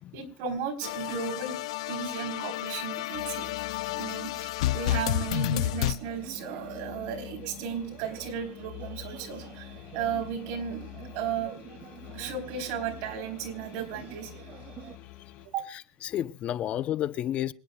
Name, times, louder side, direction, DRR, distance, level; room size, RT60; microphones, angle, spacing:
voice 1, 0.1-1.6 1.9-3.5 4.0-10.9 11.2-11.6 12.1-14.5 15.4-15.6, right 7 dB, 60° right, 3.7 m, -35 dB
sound 1, 0.8-6.0, left 15 dB, 90° left, 0.5 m, -30 dB
sound 2, 3.1-15.5, left 17 dB, 55° left, 3.7 m, -47 dB
sound 3, 4.6-15.0, right 8 dB, 45° right, 2.3 m, -48 dB
voice 2, 15.7-17.5, left 11 dB, 40° left, 0.6 m, -31 dB
26.5 x 9.8 x 2.2 m
supercardioid pair, 135°, 3 cm